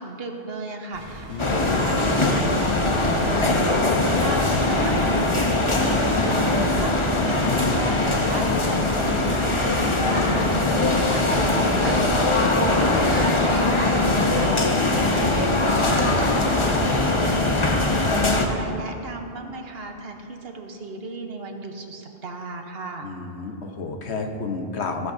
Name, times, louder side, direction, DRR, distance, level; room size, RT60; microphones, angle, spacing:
voice 1, 0.0-16.4 16.7-23.1, right 3 dB, 70° right, 3 dB, 1.2 m, -35 dB
sound 1, 0.9-6.6, right 1 dB, 30° right, 1.8 m, -37 dB
voice 2, 1.3-1.6 11.5-11.8 23.0-25.1, left 4 dB, 85° left, 4 dB, 1.2 m, -31 dB
sound 2, 1.4-18.5, left 2 dB, 30° left, 0.9 m, -21 dB
15.0 x 14.0 x 2.7 m, 2.7 s
omnidirectional pair, 1.1 m